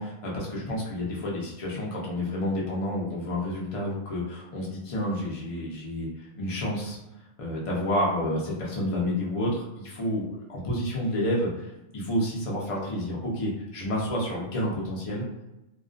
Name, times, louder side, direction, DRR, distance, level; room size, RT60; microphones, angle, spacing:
voice 1, 0.0-6.1 6.3-7.0 7.4-15.2, left 1 dB, 55° left, -4 dB, 0.3 m, -29 dB
2.3 x 2.3 x 2.5 m, 0.92 s
omnidirectional pair, 1.5 m